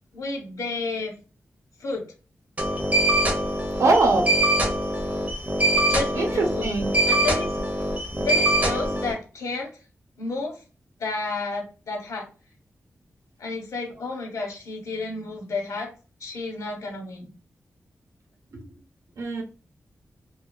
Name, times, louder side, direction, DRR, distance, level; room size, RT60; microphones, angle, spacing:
voice 1, 0.1-1.1 1.8-2.0 5.9-6.7 7.1-7.5 8.2-9.7 10.2-10.5 11.0-12.3 13.4-15.9 16.2-17.3, left 3 dB, 80° left, 3 dB, 0.9 m, -31 dB
sound 1, 2.6-9.1, right 1 dB, 25° right, 0.8 m, -23 dB
voice 2, 3.8-4.3 6.1-6.9 18.5-18.8 19.2-19.4, right 3 dB, 80° right, 2 dB, 0.7 m, -22 dB
2.7 x 2.3 x 2.2 m, 0.34 s
wide cardioid pair, 75°, 5 cm